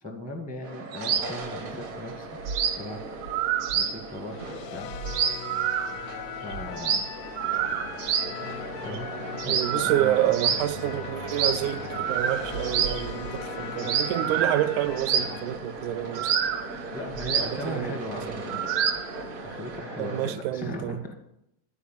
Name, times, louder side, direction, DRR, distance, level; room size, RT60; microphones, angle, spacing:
voice 1, 0.0-2.3 2.8-3.0 3.7-4.9 6.3-7.0 8.8-10.2 13.6-13.9 16.9-18.6 19.4-21.1, left 1 dB, 10° right, 0.6 m, -38 dB
sound 1, 0.6-20.3, right 2 dB, 50° right, 1.0 m, -39 dB
sound 2, 1.0-1.4 1.6-1.8 2.1-2.2 2.4-2.8 3.2-4.0 4.3-4.4 4.6-4.7 4.9-6.2 6.5-8.4 8.7-9.0 9.4-10.7 11.3-11.6 11.9-13.5 13.8-15.5 16.1-19.2, right 8 dB, 65° right, 2.0 m, -28 dB
sound 3, 1.9-3.1 3.9-15.5, left 9 dB, 85° left, 2.1 m, -40 dB
voice 2, 9.5-16.4 17.3-18.0 20.0-21.0, right 13 dB, 85° right, 2.0 m, -28 dB
14.0 x 4.8 x 9.0 m
omnidirectional pair, 3.5 m